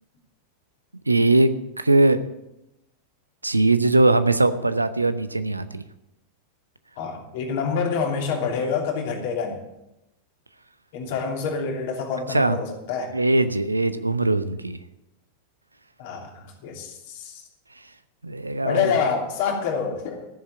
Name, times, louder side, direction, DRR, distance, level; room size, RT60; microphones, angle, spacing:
voice 1, 1.1-1.5 1.8-2.2 3.4-5.8 12.3-12.6 13.1-14.8 18.2-18.9, right 2 dB, 80° right, 12 dB, 0.8 m, -20 dB
voice 2, 7.0-9.6 10.9-13.1 16.0-17.4 18.6-20.2, left 6 dB, 50° left, 1 dB, 3.0 m, -27 dB
14.5 x 7.4 x 8.4 m, 0.90 s
figure-of-eight pair, 90°, 0 cm